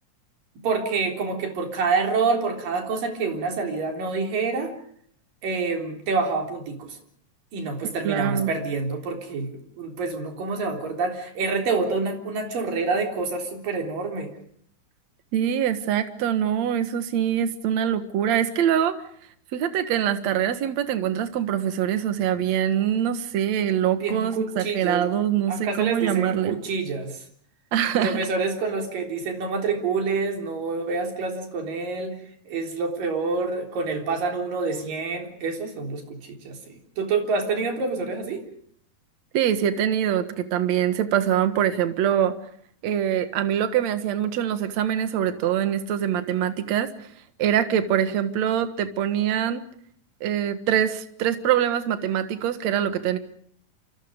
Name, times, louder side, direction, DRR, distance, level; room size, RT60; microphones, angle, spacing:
voice 1, 0.6-4.7 5.4-7.0 7.5-9.5 9.8-14.3 24.0-25.1 25.5-27.2 28.0-32.2 32.5-36.0 36.3-38.4, right 4 dB, 75° right, 3 dB, 5.4 m, -27 dB
voice 2, 8.0-8.5 15.3-19.0 19.5-26.6 27.7-28.2 39.3-42.3 42.8-46.9 47.4-49.6 50.2-53.2, right 10 dB, 60° right, 10 dB, 2.5 m, -24 dB
27.5 x 27.5 x 5.2 m, 0.63 s
omnidirectional pair, 3.9 m